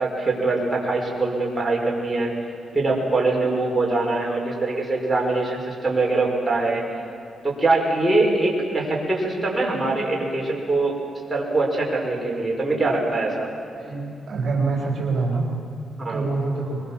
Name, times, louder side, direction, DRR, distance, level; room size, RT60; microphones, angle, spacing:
voice 1, 0.0-2.3 2.7-6.8 7.4-10.9 11.3-13.5 16.0-16.2, right 2 dB, 15° right, -3 dB, 5.6 m, -23 dB
voice 2, 13.7-15.5 16.1-16.8, right 3 dB, 50° right, -1 dB, 4.3 m, -25 dB
22.5 x 22.0 x 7.4 m, 2.6 s
cardioid pair, 95°, 0 cm